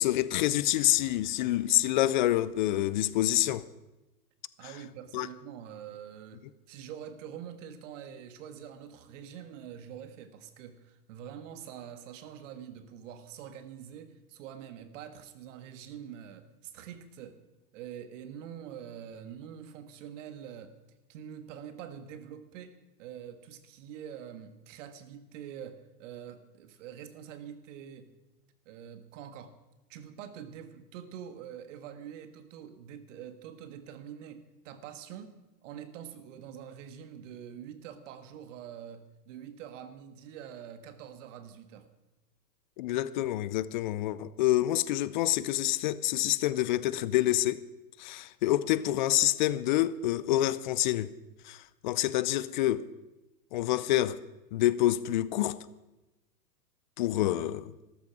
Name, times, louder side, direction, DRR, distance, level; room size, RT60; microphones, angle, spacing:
voice 1, 0.0-3.6 5.1-5.3 42.8-47.6 48.0-51.1 51.4-52.9 53.5-54.2 54.5-55.6 57.0-57.7, left 14 dB, 30° left, 0.4 m, -27 dB
voice 2, 4.6-17.4 17.7-20.7 21.1-28.1 28.6-29.5 29.9-35.3 35.6-41.9, right 9 dB, 45° right, 1.6 m, -45 dB
14.0 x 13.5 x 6.1 m
hypercardioid pair, 110°, 50 cm